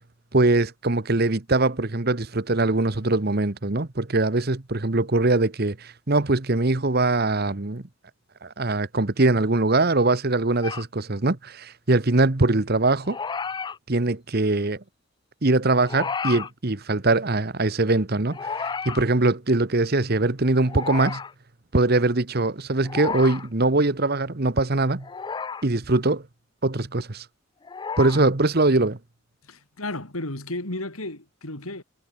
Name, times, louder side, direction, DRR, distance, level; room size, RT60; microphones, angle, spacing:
voice 1, 0.3-7.8 8.4-13.2 13.9-14.8 15.4-21.2 21.7-25.1 25.6-26.2 26.6-27.3 28.0-29.0, right 2 dB, 45° right, 1.2 m, -22 dB
sound 1, 10.6-10.8 13.0-13.8 15.8-16.5 18.3-19.0 20.7-21.3 22.8-23.5 25.0-25.7 27.6-28.2, left 5 dB, 20° left, 0.3 m, -32 dB
voice 2, 29.4-31.8, left 2 dB, 90° left, 5.5 m, -33 dB
head